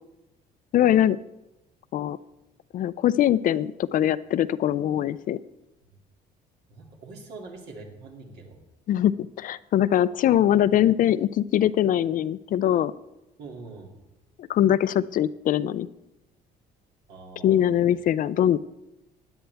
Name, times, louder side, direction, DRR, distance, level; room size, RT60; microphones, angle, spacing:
voice 1, 0.7-1.2 1.9-2.2 2.7-5.4 8.9-12.9 14.5-15.9 17.4-18.6, left 11 dB, 55° left, 17 dB, 0.4 m, -22 dB
voice 2, 6.7-8.6 13.4-14.0 17.1-17.8, right 3 dB, 75° right, 0 dB, 2.5 m, -43 dB
16.0 x 10.0 x 3.5 m, 0.95 s
cardioid pair, 110°, 17 cm